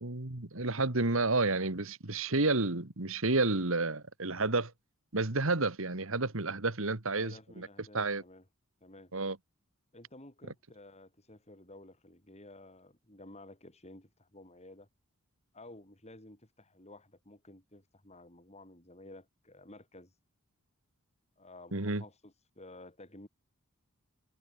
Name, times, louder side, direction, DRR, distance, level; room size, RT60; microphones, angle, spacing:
voice 1, 0.0-4.7 5.1-8.2 9.1-9.4 21.7-22.0, right 3 dB, 65° right, 2.0 m, -31 dB
voice 2, 7.1-8.4 8.8-9.1 9.9-14.9 15.5-20.1 21.4-23.3, left 2 dB, 30° left, 5.5 m, -53 dB
head